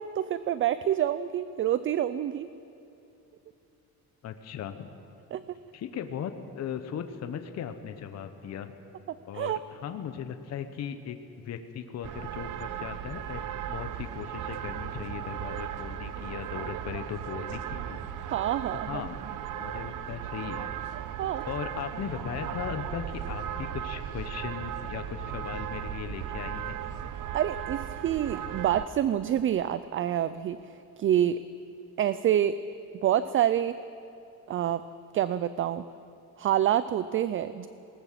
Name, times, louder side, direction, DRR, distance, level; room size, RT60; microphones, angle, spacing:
voice 1, 0.0-2.5 5.3-5.4 9.3-9.6 18.3-19.0 21.2-21.4 27.3-30.6 31.0-31.4 32.0-32.6 33.0-33.8 34.5-34.8 35.1-35.9 36.4-37.7, right 11 dB, 35° right, 14 dB, 0.4 m, -27 dB
voice 2, 4.2-4.9 5.7-8.7 9.3-18.0 18.8-19.2 19.6-20.7 21.5-26.8, left 8 dB, 45° left, 8 dB, 1.0 m, -38 dB
sound 1, 12.0-28.9, right 10 dB, 60° right, 0.9 m, -36 dB
20.0 x 18.5 x 7.5 m, 2.9 s
cardioid pair, 170°, 35 cm